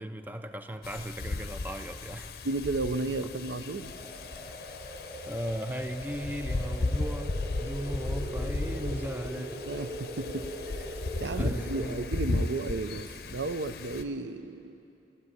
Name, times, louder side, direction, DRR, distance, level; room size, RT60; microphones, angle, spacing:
voice 1, 0.0-2.4 3.1-3.2 5.3-9.5 11.3-12.0, equal, 10° right, 8 dB, 0.4 m, -37 dB
Wind, 0.8-14.0, left 2 dB, 55° left, 0.6 m, -35 dB
voice 2, 2.4-3.9 8.7-9.0 9.4-10.9 11.2-14.8, right 3 dB, 85° right, 11 dB, 0.5 m, -34 dB
sound 1, 3.8-11.9, equal, 30° right, 2.0 m, -41 dB
15.0 x 8.1 x 9.6 m, 2.7 s
head